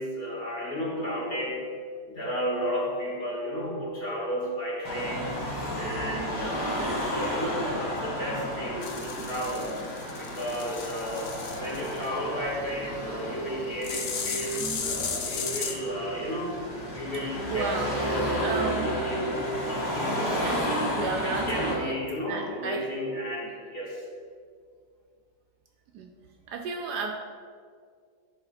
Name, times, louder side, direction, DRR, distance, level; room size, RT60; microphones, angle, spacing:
voice 1, 0.0-1.7 2.1-5.4 5.8-9.7 10.2-16.6 16.9-20.6 21.2-24.0, equal, 35° left, -5 dB, 1.1 m, -33 dB
Car passing by / Traffic noise roadway noise / Engine, 4.9-21.7, equal, 55° left, 2.3 m, -33 dB
sound 1, 8.8-12.1 13.8-15.8, left 5 dB, 80° left, 0.5 m, -35 dB
voice 2, 17.5-18.0 18.4-18.9 20.4-21.9 22.2-22.9 25.9-26.1 26.5-27.1, right 5 dB, 70° right, 2 dB, 1.0 m, -32 dB
9.8 x 3.5 x 4.1 m, 2.1 s
omnidirectional pair, 2.0 m